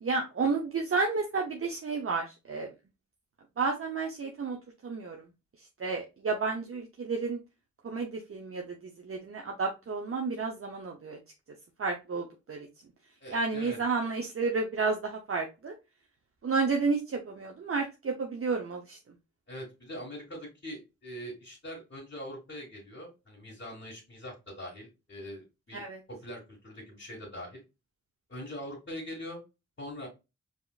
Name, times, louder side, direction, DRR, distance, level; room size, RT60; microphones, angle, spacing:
voice 1, 0.0-2.7 3.6-4.6 4.8-5.2 5.8-7.4 7.8-8.6 9.0-11.2 11.8-12.7 13.3-15.7 16.4-19.0 25.7-26.0, right 4 dB, 50° right, 2 dB, 0.7 m, -31 dB
voice 2, 13.2-13.8 19.5-25.8 26.1-27.6 28.3-29.4 29.8-30.1, equal, 40° left, -4 dB, 1.7 m, -42 dB
4.8 x 2.9 x 2.4 m, 0.26 s
cardioid pair, 40°, 29 cm